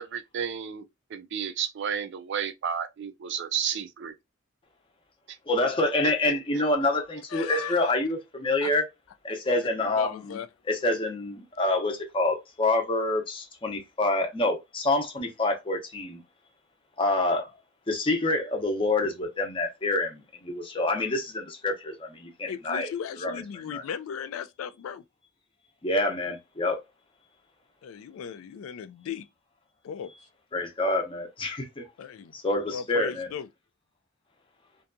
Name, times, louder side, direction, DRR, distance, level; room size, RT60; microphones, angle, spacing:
voice 1, 0.0-4.1 5.3-5.4 6.0-6.9, right 8 dB, 60° right, 0.4 m, -33 dB
voice 2, 5.5-8.8 9.2-10.4 10.7-16.2 17.0-17.5 17.9-22.9 23.2-23.8 25.8-26.8 30.5-31.9 32.3-33.3, left 2 dB, 25° left, 0.6 m, -27 dB
voice 3, 7.3-7.9 8.6-8.7 9.5-9.6 9.9-10.5 22.5-25.0 27.8-29.3 29.8-30.1 32.0-32.3 32.7-33.5, left 7 dB, 80° left, 0.3 m, -37 dB
2.7 x 2.2 x 2.5 m
head